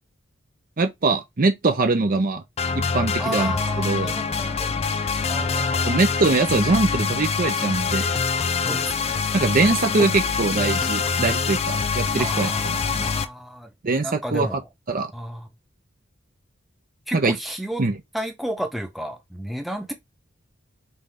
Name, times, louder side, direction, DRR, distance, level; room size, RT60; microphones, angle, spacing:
voice 1, 0.8-2.4 2.8-4.2 5.8-8.2 9.3-13.1 13.8-14.6 14.9-15.1 17.1-17.4 17.8-18.0, right 3 dB, 45° right, 0.6 m, -22 dB
sound 1, 2.6-13.3, left 5 dB, 30° left, 0.4 m, -25 dB
voice 2, 3.2-5.0 5.2-6.0 8.6-9.2 12.2-14.6 15.1-15.5 17.1-17.8 18.1-19.9, equal, ahead, 0.8 m, -33 dB
5.5 x 2.7 x 3.3 m
head